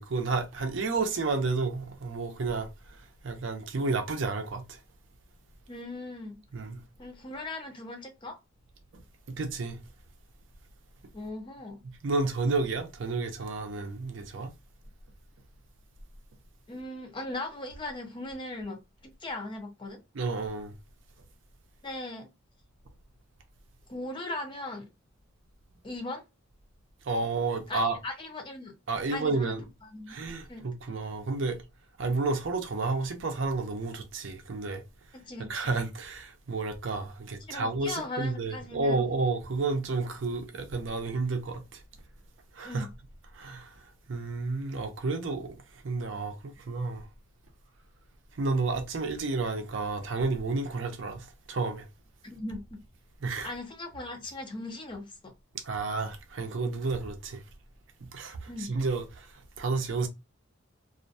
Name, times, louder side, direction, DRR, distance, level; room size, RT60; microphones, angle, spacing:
voice 1, 0.0-4.8 6.5-6.8 8.9-9.0 9.3-9.8 12.0-14.5 20.1-20.7 27.0-28.0 28.9-29.6 30.1-31.6 32.0-34.8 35.4-41.8 42.5-42.9 43.3-47.1 48.3-51.9 53.2-53.5 55.5-57.4 58.1-60.1, right 3 dB, 60° right, 0.5 m, -31 dB
voice 2, 5.7-6.4 7.0-8.4 11.1-11.8 16.7-20.0 21.8-22.3 23.9-24.9 25.8-26.2 27.7-28.8 29.1-29.6 29.8-30.2 30.5-30.7 35.1-35.5 37.5-39.0 42.6-42.9 52.2-52.6 53.4-55.3 58.5-58.7, left 2 dB, 25° left, 0.4 m, -38 dB
2.4 x 2.1 x 2.5 m
head